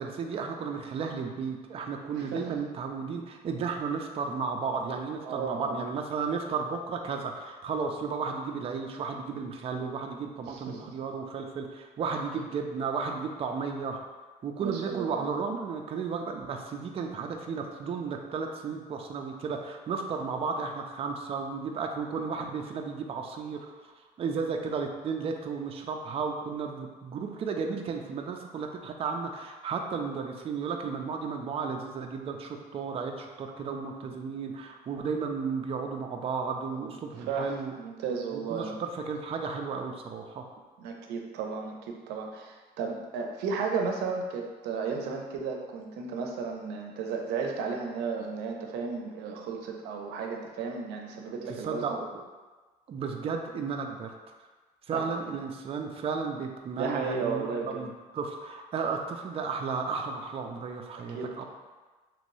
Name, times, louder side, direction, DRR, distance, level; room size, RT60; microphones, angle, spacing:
voice 1, 0.0-14.0 14.4-23.7 24.2-37.7 38.3-40.4 51.6-52.2 52.9-54.1 54.9-61.4, right 5 dB, 35° right, 3 dB, 0.4 m, -33 dB
voice 2, 2.2-2.6 5.2-5.8 10.5-10.8 14.6-15.3 37.2-38.8 40.8-52.0 54.9-55.0 56.7-57.8 60.9-61.4, right 5 dB, 85° right, 2 dB, 0.5 m, -34 dB
3.0 x 3.0 x 2.6 m, 1.3 s
cardioid pair, 110°, 17 cm